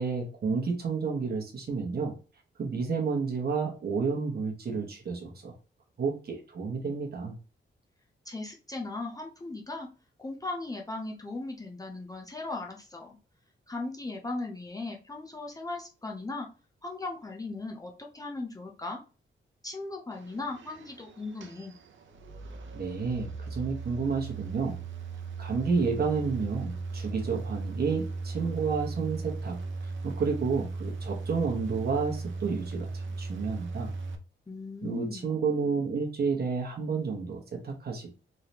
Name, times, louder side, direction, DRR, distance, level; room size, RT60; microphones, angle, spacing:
voice 1, 0.0-2.1 2.6-5.5 6.0-7.4 22.7-24.8 25.4-33.9 34.8-38.1, right 5 dB, 50° right, 1 dB, 1.2 m, -30 dB
voice 2, 8.2-9.9 10.2-13.2 13.7-16.5 16.8-19.0 19.6-21.7 34.5-35.3, left 2 dB, 15° left, 0 dB, 0.6 m, -37 dB
sound 1, 20.1-34.2, right 3 dB, 70° right, 0.6 m, -37 dB
3.7 x 3.3 x 2.9 m, 0.35 s
wide cardioid pair, 130°, 20 cm